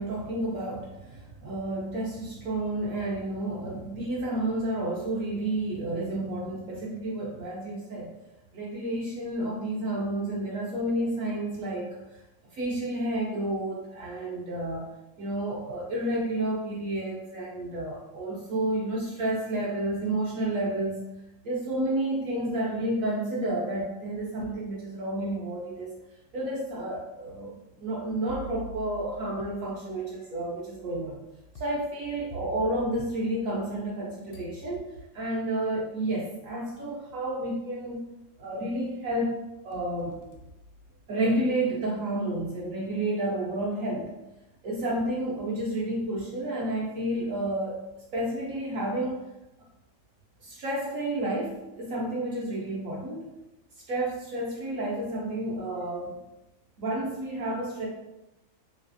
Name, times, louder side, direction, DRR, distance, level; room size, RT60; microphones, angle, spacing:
voice 1, 0.0-8.1 8.5-12.2 12.5-14.9 15.2-21.0 21.4-26.0 26.3-27.5 27.8-31.2 31.6-34.9 35.1-38.0 38.4-39.4 39.6-40.2 41.1-44.1 44.6-47.8 48.1-49.2 50.4-53.3 53.9-56.2 56.8-57.9, right 1 dB, 65° right, -4 dB, 0.8 m, -30 dB
sound 1, 23.9-24.7 25.3-25.4 26.3-26.4 28.3-34.0 34.3-35.3 36.5-36.6 37.1-37.5 37.9-38.7 39.1-41.4, equal, 75° left, 1.2 m, -47 dB
3.2 x 2.8 x 2.5 m, 0.96 s
omnidirectional pair, 1.9 m